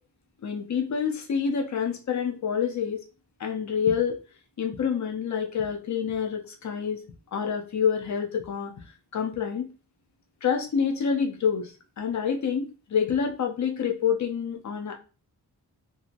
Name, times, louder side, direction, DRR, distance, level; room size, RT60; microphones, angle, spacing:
voice 1, 0.4-3.0 3.4-4.2 4.6-7.0 7.3-8.7 9.1-9.7 10.4-14.9, left 7 dB, 45° left, 3 dB, 0.6 m, -27 dB
2.8 x 2.7 x 2.4 m, 0.34 s
wide cardioid pair, 175°, 40 cm